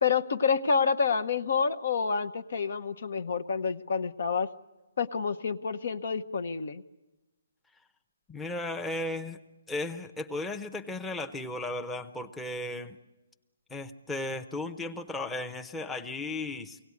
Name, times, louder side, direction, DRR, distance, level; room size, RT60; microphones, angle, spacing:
voice 1, 0.0-4.5 5.0-6.8, left 5 dB, 65° left, 12 dB, 0.8 m, -28 dB
voice 2, 8.3-9.4 9.7-13.0 13.7-16.8, left 2 dB, 5° left, 6 dB, 0.8 m, -35 dB
24.0 x 17.5 x 9.6 m, 1.1 s
hypercardioid pair, 155°, 0 cm